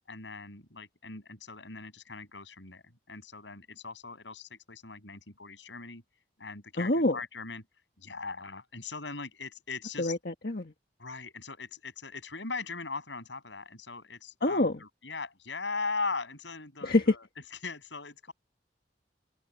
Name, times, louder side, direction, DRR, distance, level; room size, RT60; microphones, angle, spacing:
voice 1, 0.1-6.0 6.4-7.7 8.0-10.2 11.0-17.3 17.6-18.3, left 4 dB, 85° left, 7.2 m, -39 dB
voice 2, 6.8-7.2 10.0-10.7 14.4-14.8 16.8-17.1, left 2 dB, 55° left, 1.6 m, -26 dB
head